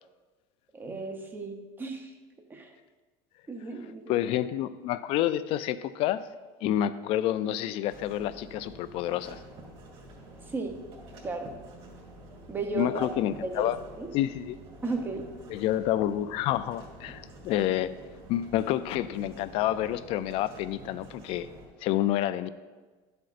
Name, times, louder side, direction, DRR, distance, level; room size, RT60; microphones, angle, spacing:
voice 1, 0.7-2.1 2.5-2.7 3.5-4.2 10.5-10.8 11.2-11.6 12.5-13.1 13.4-13.7 14.0-14.1 14.8-15.3, right 3 dB, 15° right, 5 dB, 0.7 m, -34 dB
voice 2, 4.1-6.2 6.6-9.4 12.7-13.8 14.1-14.6 15.5-17.9 18.3-21.5 21.8-22.5, left 12 dB, 45° left, 14 dB, 0.3 m, -28 dB
sound 1, 7.8-21.7, right 1 dB, 45° right, 2.7 m, -48 dB
12.0 x 7.8 x 2.5 m, 1.3 s
cardioid pair, 155°, 13 cm